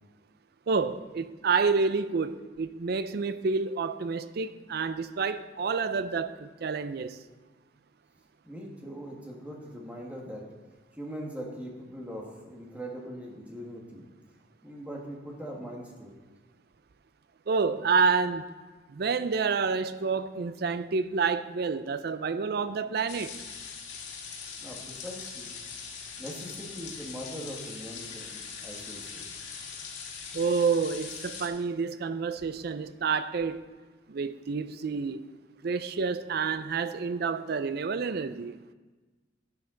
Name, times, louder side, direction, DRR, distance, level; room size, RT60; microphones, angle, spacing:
voice 1, 0.7-7.2 17.5-18.5 18.9-23.3 30.3-33.6 34.1-35.3 35.6-38.6, right 5 dB, 55° right, 0.4 m, -29 dB
voice 2, 8.4-10.4 11.0-14.1 14.6-16.1 24.6-25.5 26.2-29.3, equal, 10° right, 1.6 m, -41 dB
sound 1, 23.1-31.5, left 6 dB, 75° left, 1.8 m, -41 dB
11.0 x 9.2 x 3.9 m
head